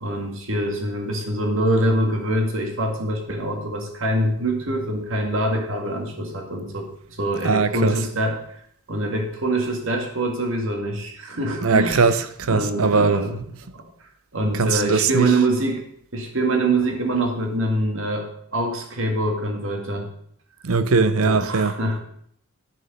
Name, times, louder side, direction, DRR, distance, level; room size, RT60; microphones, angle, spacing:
voice 1, 0.0-8.4 8.9-12.0 12.5-13.4 13.7-13.8 14.3-15.8 16.1-20.1 21.2-22.0, right 1 dB, 65° right, 2.1 m, -24 dB
voice 2, 7.4-8.0 11.6-13.4 14.5-15.3 20.6-21.8, right 4 dB, 85° right, 0.7 m, -20 dB
11.0 x 6.5 x 5.5 m
head